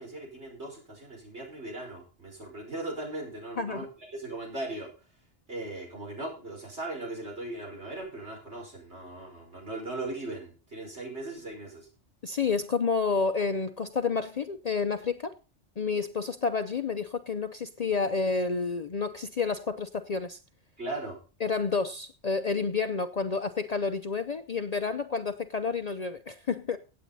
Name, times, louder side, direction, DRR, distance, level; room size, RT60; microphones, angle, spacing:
voice 1, 0.0-4.9 5.5-11.9 20.8-21.2, right 2 dB, 70° right, -1 dB, 5.7 m, -38 dB
voice 2, 3.6-3.9 12.2-15.3 15.8-20.4 21.4-26.8, left 4 dB, 45° left, 9 dB, 0.6 m, -30 dB
16.5 x 8.5 x 4.1 m, 0.35 s
omnidirectional pair, 1.2 m